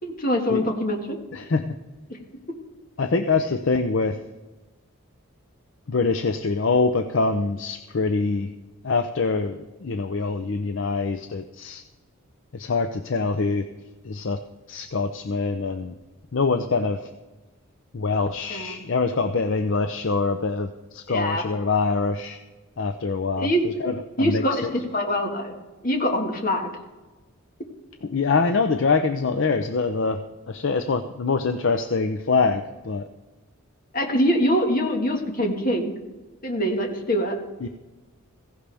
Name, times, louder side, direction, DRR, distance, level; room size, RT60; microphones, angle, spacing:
voice 1, 0.0-1.2 2.1-2.2 18.5-18.9 21.1-21.5 23.4-23.6 24.2-25.5 25.8-26.7 33.9-35.9 36.4-37.4, equal, 40° left, 2 dB, 1.8 m, -24 dB
voice 2, 1.3-1.7 3.0-4.2 5.9-8.5 8.8-11.8 12.5-13.7 14.0-14.4 14.7-15.9 16.3-17.0 17.9-22.4 22.8-24.7 28.1-30.2 30.5-33.1 37.6-37.7, left 4 dB, 60° left, 8 dB, 0.6 m, -24 dB
16.5 x 16.0 x 3.5 m, 1.2 s
head